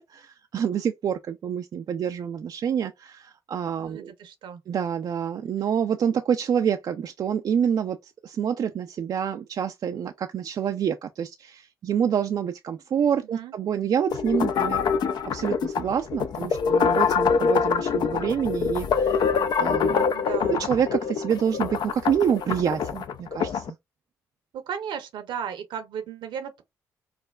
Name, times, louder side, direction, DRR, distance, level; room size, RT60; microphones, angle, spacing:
voice 1, 0.0-4.1 4.7-14.8 15.2-19.3 19.6-20.0 20.6-23.7, right 8 dB, 50° right, 0.4 m, -27 dB
voice 2, 3.8-4.6 13.2-13.5 20.1-20.7 24.5-26.6, right 8 dB, 70° right, 0.7 m, -35 dB
sound 1, 14.1-23.7, left 6 dB, 60° left, 0.4 m, -25 dB
4.7 x 2.1 x 2.2 m
hypercardioid pair, 45°, 8 cm